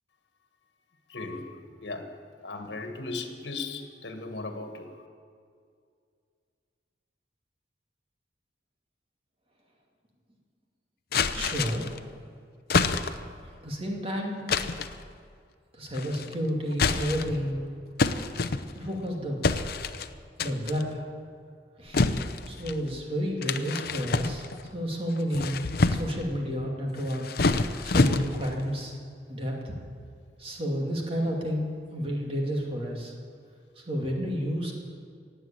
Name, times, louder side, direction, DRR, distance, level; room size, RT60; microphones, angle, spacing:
voice 1, 1.1-2.0 2.4-4.9, left 3 dB, 75° left, 5 dB, 1.5 m, -37 dB
sound 1, 11.1-12.0 12.7-13.3 14.5-15.0 15.9-16.3 16.7-17.4 18.0-19.0 19.4-20.1 20.4-20.8 21.9-22.8 23.4-24.7 25.2-26.2 27.0-28.6, left 3 dB, 55° left, 0.6 m, -27 dB
voice 2, 11.3-11.9 13.6-14.5 15.7-17.6 18.7-19.4 20.4-21.0 21.8-22.0 22.5-25.6 25.9-27.2 27.5-29.0 29.3-29.8 30.4-33.1 33.8-34.7, equal, 35° right, 0 dB, 2.4 m, -31 dB
17.5 x 7.8 x 8.8 m, 2.2 s
head